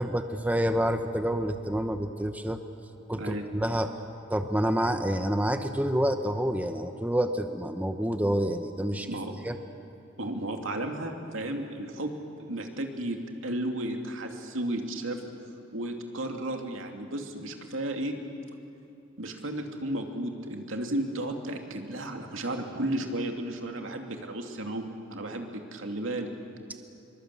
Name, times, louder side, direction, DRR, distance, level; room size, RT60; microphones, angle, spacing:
voice 1, 0.0-2.6 3.1-3.9 4.3-9.1 9.4-9.6, equal, 10° right, 7 dB, 0.9 m, -28 dB
voice 2, 3.1-3.4 8.9-9.3 10.2-15.2 15.7-18.1 19.2-24.8 25.1-26.3, right 1 dB, 80° right, 3 dB, 2.6 m, -33 dB
25.0 x 23.5 x 8.3 m, 2.8 s
head